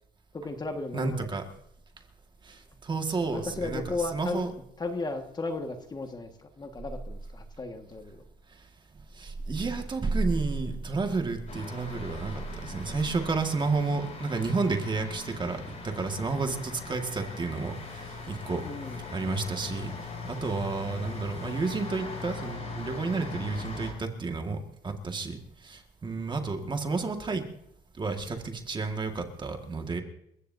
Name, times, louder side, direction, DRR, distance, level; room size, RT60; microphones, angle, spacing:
voice 1, 0.3-1.3 3.3-4.5 4.8-8.2 18.6-19.0, left 3 dB, 25° left, 5 dB, 1.7 m, -35 dB
voice 2, 0.9-1.5 2.4-4.5 9.1-18.6 19.1-24.6 24.8-25.4 25.6-27.5 28.0-30.0, right 3 dB, 25° right, 4 dB, 1.8 m, -31 dB
sound 1, 11.5-23.9, left 4 dB, 45° left, 6.7 m, -40 dB
28.5 x 15.0 x 2.7 m, 0.77 s
cardioid pair, 110°, 17 cm